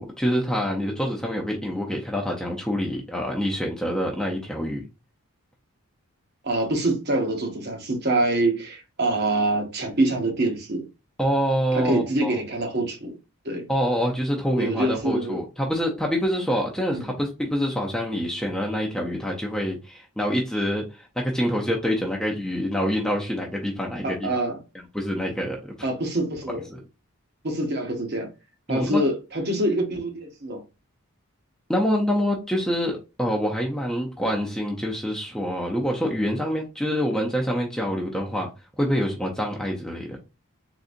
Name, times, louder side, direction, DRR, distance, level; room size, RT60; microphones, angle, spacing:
voice 1, 0.0-4.9 11.2-12.4 13.7-24.3 24.9-25.9 26.7-26.8 28.7-29.0 31.7-38.5 38.8-40.1, equal, 5° left, 0.4 m, -26 dB
voice 2, 6.4-10.8 11.7-13.1 13.4-13.6 14.6-15.4 16.9-17.1 24.0-24.6 25.8-26.6 27.4-28.3 28.7-30.6, right 1 dB, 45° right, 0.8 m, -25 dB
3.8 x 2.6 x 2.5 m
head